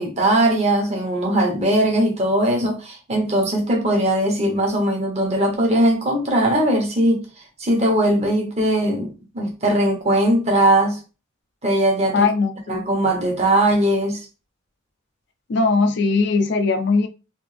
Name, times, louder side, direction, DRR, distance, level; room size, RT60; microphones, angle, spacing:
voice 1, 0.0-7.3 7.6-11.0 11.6-12.3 12.7-14.2, right 1 dB, 35° right, 1.1 m, -19 dB
voice 2, 12.1-12.8 15.5-17.1, left 4 dB, 55° left, 0.4 m, -19 dB
3.5 x 2.8 x 3.3 m
head